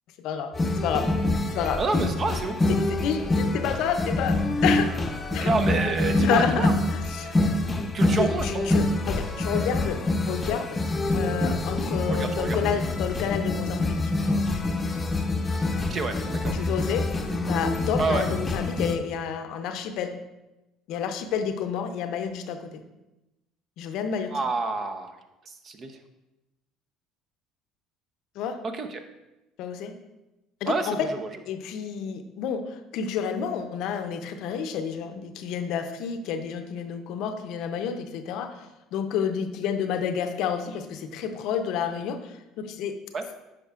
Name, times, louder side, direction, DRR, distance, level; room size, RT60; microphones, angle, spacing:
voice 1, 0.2-0.5 0.8-1.1 1.5-1.8 2.7-4.9 5.3-5.5 6.2-7.4 8.2-10.8 11.1-14.1 16.5-17.1 17.5-20.2 20.9-22.8 23.8-24.4 28.4-28.6 29.6-29.9 30.6-31.1 31.4-43.0, left 7 dB, 70° left, 8 dB, 0.6 m, -30 dB
sound 1, 0.5-19.0, left 2 dB, 25° left, 0.7 m, -26 dB
voice 2, 1.8-2.6 5.4-6.7 7.9-8.8 12.1-12.6 15.9-16.5 18.0-18.2 24.3-25.1 25.6-25.9 28.7-29.0 30.7-30.9 43.1-43.2, right 3 dB, 45° right, 7 dB, 0.7 m, -28 dB
9.3 x 5.2 x 2.4 m, 0.99 s
supercardioid pair, 75°, 0 cm